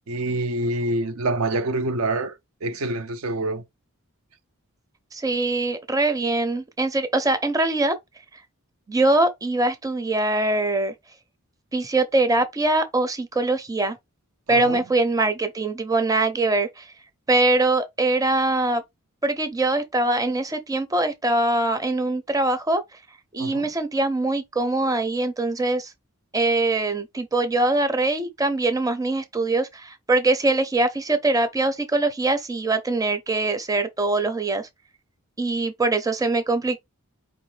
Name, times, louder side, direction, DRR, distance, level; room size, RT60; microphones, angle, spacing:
voice 1, 0.1-3.6 14.5-14.8 23.4-23.7, right 2 dB, 70° right, 0.6 m, -26 dB
voice 2, 5.1-7.9 8.9-10.9 11.7-14.0 14.5-16.9 17.3-18.8 19.2-22.8 23.3-25.9 26.3-34.7 35.4-36.8, right 2 dB, 15° right, 0.6 m, -23 dB
4.6 x 3.2 x 3.2 m
head